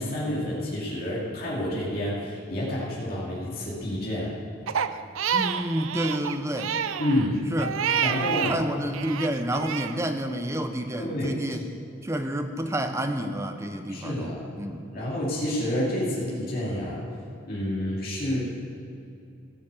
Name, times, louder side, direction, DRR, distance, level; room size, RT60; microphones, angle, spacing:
voice 1, 0.0-4.3 7.0-7.4 8.0-8.6 11.0-11.4 13.9-14.5 14.9-17.0 17.5-18.4, left 1 dB, 45° left, -6 dB, 2.7 m, -29 dB
Crying sobbing, 4.7-8.6 8.9-10.0, right 8 dB, 80° right, 0.5 m, -28 dB
voice 2, 5.3-6.7 7.5-7.7 8.5-11.7 12.0-14.8, right 1 dB, 15° right, 7 dB, 0.6 m, -29 dB
16.0 x 6.8 x 6.8 m, 2.7 s
head